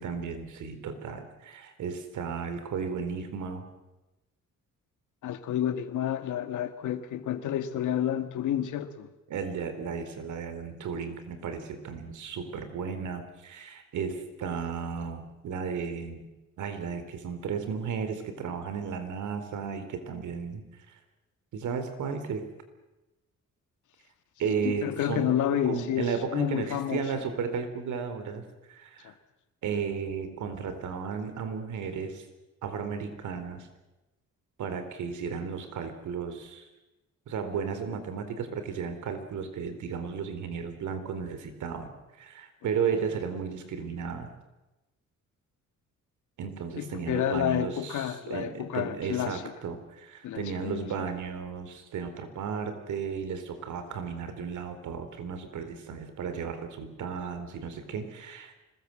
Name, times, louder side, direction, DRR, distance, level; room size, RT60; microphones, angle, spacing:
voice 1, 0.0-3.6 9.3-16.3 16.6-21.0 21.5-22.5 24.4-25.4 25.6-29.2 29.6-32.3 32.6-33.7 34.6-36.7 37.3-41.9 42.2-44.3 46.4-58.5, right 6 dB, 75° right, 4.0 m, -34 dB
voice 2, 5.2-9.1 24.6-27.0 29.0-29.1 46.8-49.4 50.2-51.0, left 10 dB, 80° left, 2.0 m, -30 dB
25.5 x 20.5 x 7.8 m
cardioid pair, 90°, 30 cm